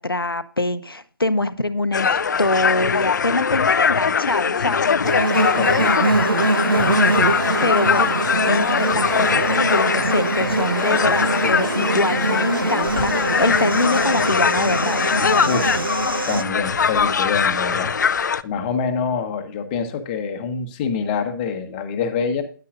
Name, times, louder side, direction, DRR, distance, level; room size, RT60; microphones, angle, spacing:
voice 1, 0.0-5.1 7.6-8.2 8.5-15.2, left 2 dB, 85° left, 12 dB, 0.8 m, -24 dB
sound 1, 1.9-18.4, left 6 dB, 55° left, 0.4 m, -21 dB
sound 2, 5.0-16.4, right 2 dB, 75° right, 0.7 m, -23 dB
voice 2, 5.5-6.0 15.5-22.4, left 5 dB, 25° left, 7 dB, 1.1 m, -26 dB
9.7 x 9.4 x 2.5 m, 0.41 s
figure-of-eight pair, 140°, 12 cm